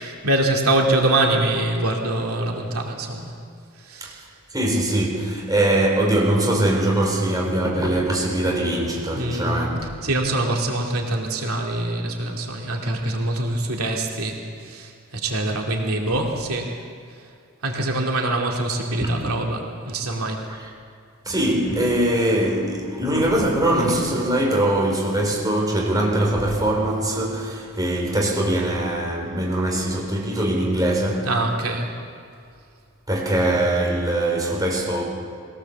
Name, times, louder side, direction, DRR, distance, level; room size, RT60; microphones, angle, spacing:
voice 1, 0.0-3.4 3.8-4.2 9.2-9.6 10.0-16.8 17.6-20.5 31.2-31.9, right 2 dB, 90° right, 2.6 m, -24 dB
voice 2, 4.5-9.9 19.0-19.1 21.2-31.3 33.1-35.0, right 1 dB, 20° right, 4.3 m, -22 dB
21.5 x 18.0 x 7.3 m
head